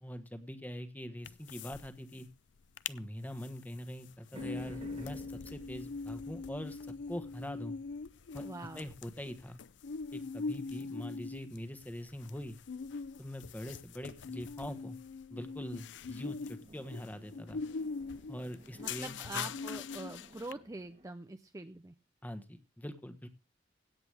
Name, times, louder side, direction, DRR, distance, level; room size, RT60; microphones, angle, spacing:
voice 1, 0.0-2.3 2.9-6.8 7.1-7.8 8.3-8.4 8.7-9.6 10.1-12.6 13.2-15.0 15.3-17.6 18.3-19.5 22.2-23.3, equal, 10° left, 10 dB, 1.3 m, -43 dB
sound 1, 1.2-1.9 2.1-2.2 2.6-3.0 3.4-20.5, left 4 dB, 70° left, 0.5 m, -42 dB
sound 2, 4.3-10.8 16.2-21.1, right 1 dB, 35° right, 1.5 m, -56 dB
voice 2, 8.4-8.9 18.8-21.9, right 2 dB, 20° right, 9 dB, 0.6 m, -44 dB
17.0 x 8.2 x 3.4 m, 0.27 s
head